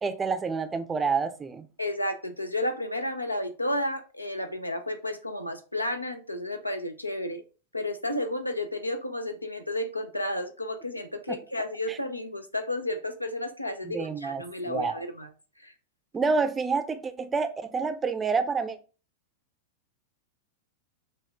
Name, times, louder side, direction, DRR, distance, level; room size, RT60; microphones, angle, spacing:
voice 1, 0.0-1.7 11.3-11.4 11.9-12.0 13.8-15.0 16.1-18.8, right 4 dB, 15° right, 0.5 m, -28 dB
voice 2, 1.8-7.4 7.7-15.3 15.6-15.7, left 1 dB, 85° left, 0.5 m, -32 dB
6.0 x 2.3 x 3.4 m
figure-of-eight pair, 90°, 0 cm